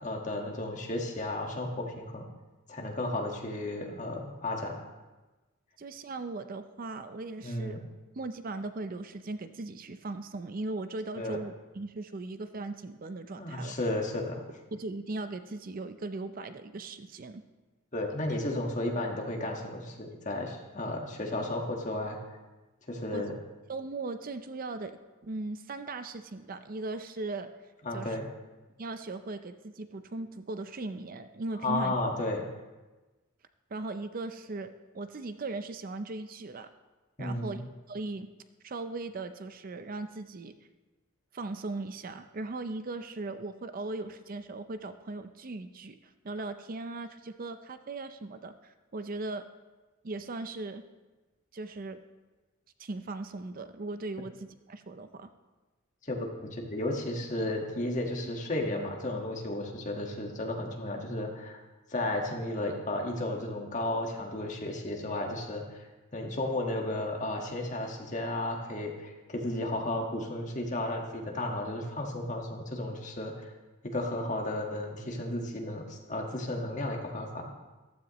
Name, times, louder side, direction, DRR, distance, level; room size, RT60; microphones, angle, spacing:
voice 1, 0.0-2.2 2.7-4.8 7.4-7.8 11.2-11.4 13.4-14.5 17.9-22.2 22.9-23.3 27.8-28.3 31.6-32.5 37.2-37.6 56.0-61.6 61.9-65.6 66.1-73.5 73.8-77.5, left 1 dB, 35° left, 1 dB, 1.6 m, -33 dB
voice 2, 5.8-7.8 8.2-13.8 14.7-17.4 23.1-23.3 23.7-27.5 27.9-28.2 28.8-32.0 33.7-34.7 34.9-36.7 37.2-37.6 37.9-38.3 38.6-40.5 41.3-49.5 50.0-50.8 51.5-52.0 52.8-55.3, right 2 dB, 45° right, 10 dB, 0.5 m, -38 dB
14.5 x 12.5 x 3.1 m, 1.2 s
head